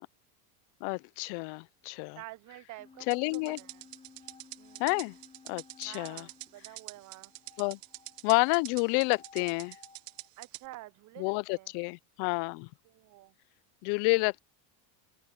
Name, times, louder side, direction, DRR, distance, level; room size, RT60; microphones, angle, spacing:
voice 1, 0.8-2.2 3.1-3.6 4.8-5.2 5.5-6.3 7.6-7.8 8.2-9.8 11.2-12.7 13.8-14.4, left 29 dB, 60° left, 0.5 m, -29 dB
voice 2, 2.2-3.1 3.3-3.8 4.2-4.3 4.6-4.9 5.8-7.6 10.4-11.7 12.8-13.3, right 18 dB, 40° right, 0.7 m, -49 dB
sound 1, 2.8-10.3, left 4 dB, 15° left, 6.0 m, -58 dB
sound 2, 3.1-10.7, right 28 dB, 80° right, 0.6 m, -46 dB
open air
supercardioid pair, 135°, 45 cm